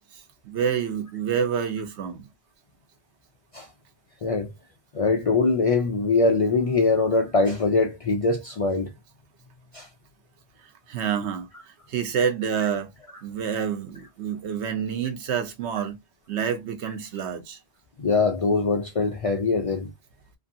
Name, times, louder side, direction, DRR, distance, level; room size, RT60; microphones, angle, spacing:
voice 1, 0.5-2.2 10.9-11.5 11.9-12.9 13.2-16.0 16.3-17.6, right 7 dB, 90° right, 1.0 m, -27 dB
voice 2, 4.2-4.5 4.9-8.9 9.7-9.9 18.0-19.9, left 3 dB, 55° left, 0.4 m, -22 dB
2.9 x 2.5 x 2.6 m
omnidirectional pair, 1.1 m